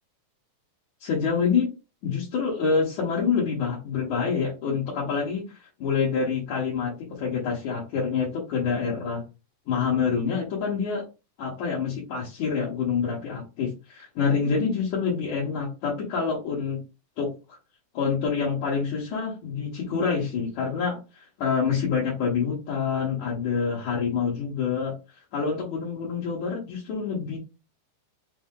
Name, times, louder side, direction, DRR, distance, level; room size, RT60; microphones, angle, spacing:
voice 1, 1.0-1.7 2.0-9.2 9.7-11.1 11.4-16.8 17.2-17.6 17.9-24.9 25.3-27.4, left 6 dB, 65° left, -5 dB, 2.4 m, -27 dB
6.4 x 2.1 x 3.6 m, 0.29 s
omnidirectional pair, 3.9 m